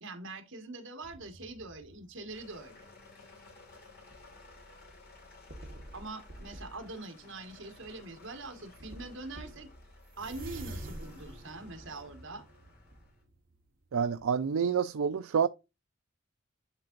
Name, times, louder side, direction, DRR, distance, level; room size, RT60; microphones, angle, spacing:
voice 1, 0.0-2.9 5.9-9.7 10.2-12.4, right 2 dB, 65° right, 1.7 m, -43 dB
sound 1, 1.0-3.1 3.7-4.3 4.8-4.9 5.5-7.1 7.8-8.0 8.5-8.6 8.8-13.9 14.2-14.3, right 1 dB, 40° right, 1.4 m, -48 dB
sound 2, 2.3-13.2, left 2 dB, 50° left, 2.8 m, -56 dB
voice 2, 13.9-15.5, right 6 dB, 85° right, 0.4 m, -28 dB
11.0 x 3.8 x 2.5 m
head